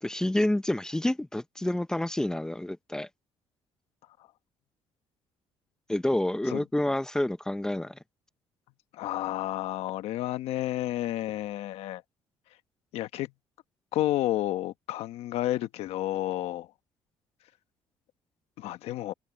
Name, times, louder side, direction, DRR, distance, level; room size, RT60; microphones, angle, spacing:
voice 1, 0.0-3.1 5.9-8.0, left 1 dB, 5° left, 0.7 m, -28 dB
voice 2, 8.9-12.0 12.9-13.3 13.9-16.7 18.6-19.1, left 14 dB, 80° left, 1.1 m, -31 dB
cardioid pair, 145°, 10 cm